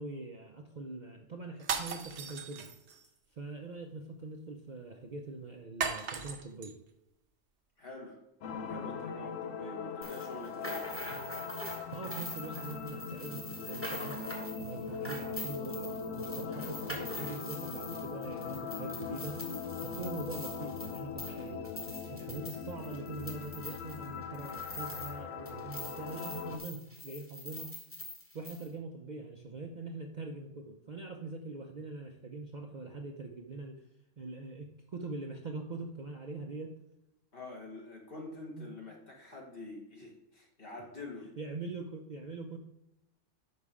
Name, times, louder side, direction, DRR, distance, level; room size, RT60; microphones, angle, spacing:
voice 1, 0.0-2.7 3.3-6.7 11.1-11.2 11.9-14.2 14.6-19.4 19.8-27.8 28.3-33.8 34.2-36.8 38.5-38.7 41.4-42.6, right 3 dB, 45° right, 2 dB, 0.6 m, -43 dB
sound 1, 1.6-3.1 5.8-6.7, right 6 dB, 65° right, 1.0 m, -36 dB
voice 2, 7.8-8.2 8.7-10.9 37.3-41.3, left 2 dB, 45° left, -1 dB, 1.8 m, -46 dB
sound 2, 8.4-26.6, left 6 dB, 80° left, 1.1 m, -41 dB
sound 3, 10.0-25.2 25.5-28.7, left 1 dB, 10° left, 1.2 m, -44 dB
5.7 x 5.5 x 4.8 m, 0.87 s
omnidirectional pair, 1.3 m